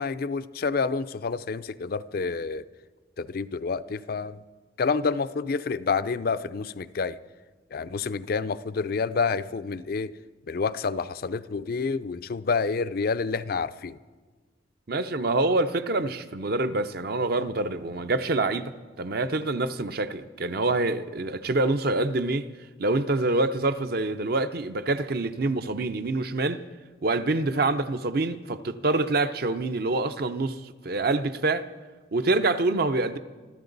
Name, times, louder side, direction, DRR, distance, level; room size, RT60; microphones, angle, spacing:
voice 1, 0.0-2.6 3.2-4.4 4.8-7.2 7.7-10.1 10.5-14.0, left 4 dB, 55° left, 0.4 m, -28 dB
voice 2, 14.9-18.7 19.0-22.5 22.8-26.6 27.0-31.7 32.1-33.2, right 2 dB, 55° right, 0.7 m, -26 dB
25.5 x 13.5 x 4.0 m
head